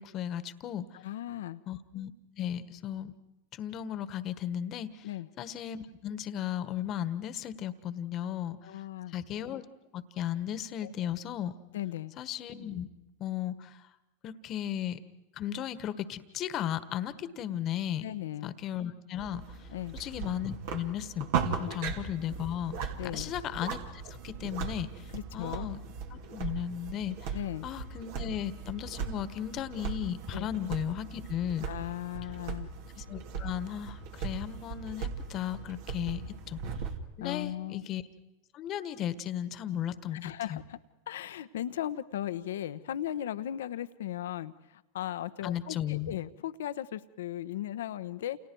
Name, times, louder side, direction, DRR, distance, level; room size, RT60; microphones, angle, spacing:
voice 1, 0.0-0.9 1.7-2.1 2.4-3.1 3.5-5.1 5.4-8.6 9.1-9.6 9.9-11.5 12.2-12.9 13.2-13.8 14.2-15.0 15.3-18.1 18.4-19.7 19.9-25.8 26.1-27.4 27.6-31.7 33.0-36.6 37.2-38.0 38.5-40.6 45.4-46.1, left 10 dB, 40° left, 14 dB, 1.5 m, -35 dB
voice 2, 0.9-1.6 5.0-5.3 8.6-9.1 10.8-11.1 11.7-12.1 18.0-18.5 19.7-20.0 21.7-21.8 23.0-23.3 25.1-25.7 27.3-27.7 30.3-30.5 31.7-32.7 37.2-37.8 40.1-40.8 41.1-48.4, left 12 dB, 75° left, 13 dB, 1.1 m, -37 dB
sound 1, 19.2-37.0, right 6 dB, 65° right, 2.6 m, -38 dB
29.5 x 29.0 x 4.7 m, 1.0 s
hypercardioid pair, 105°, 0 cm